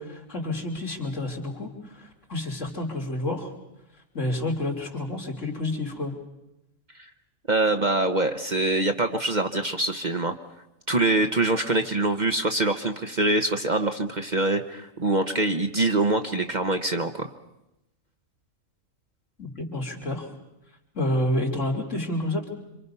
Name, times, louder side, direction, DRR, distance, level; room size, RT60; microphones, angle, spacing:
voice 1, 0.0-3.5 4.1-6.1 19.4-20.3 20.9-22.5, left 1 dB, 65° left, 1 dB, 3.4 m, -29 dB
voice 2, 7.5-10.4 10.9-17.3, right 2 dB, 40° right, 6 dB, 1.0 m, -24 dB
27.0 x 25.5 x 5.5 m, 0.91 s
omnidirectional pair, 1.4 m